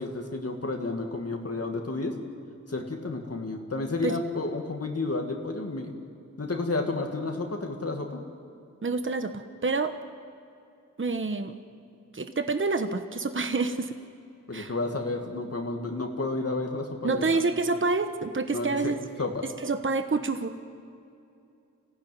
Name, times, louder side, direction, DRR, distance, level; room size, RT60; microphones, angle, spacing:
voice 1, 0.0-2.2 2.7-5.9 6.4-8.2 14.5-17.5 18.5-18.9 19.2-19.5, left 3 dB, 55° left, 2 dB, 2.1 m, -31 dB
voice 2, 8.8-9.9 11.0-11.5 12.1-14.0 14.5-14.7 17.0-19.0 19.6-20.6, right 3 dB, 40° right, 8 dB, 1.1 m, -28 dB
26.0 x 16.0 x 9.4 m, 2.5 s
wide cardioid pair, 70°, 30 cm